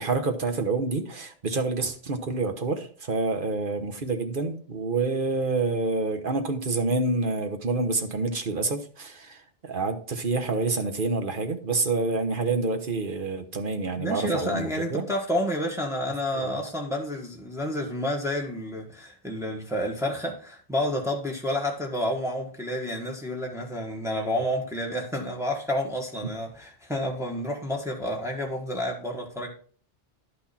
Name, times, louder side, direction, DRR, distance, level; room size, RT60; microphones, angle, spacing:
voice 1, 0.0-15.1 16.3-16.6, right 3 dB, 55° right, 6 dB, 1.3 m, -28 dB
voice 2, 14.0-29.5, left 1 dB, 5° right, 0 dB, 1.6 m, -30 dB
11.0 x 6.1 x 4.3 m, 0.44 s
omnidirectional pair, 1.0 m